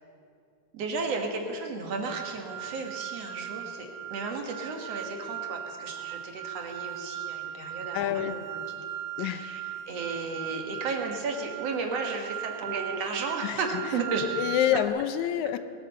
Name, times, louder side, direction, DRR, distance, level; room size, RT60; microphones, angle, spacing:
voice 1, 0.7-8.4 9.2-9.6 9.9-14.2, right 4 dB, 60° right, 3 dB, 2.4 m, -34 dB
sound 1, 2.1-14.9, right 11 dB, 85° right, 1.9 m, -38 dB
voice 2, 7.9-8.4 9.2-9.5 13.4-13.6 14.4-15.6, left 11 dB, 85° left, 11 dB, 2.1 m, -27 dB
20.5 x 9.7 x 6.6 m, 2.3 s
omnidirectional pair, 3.3 m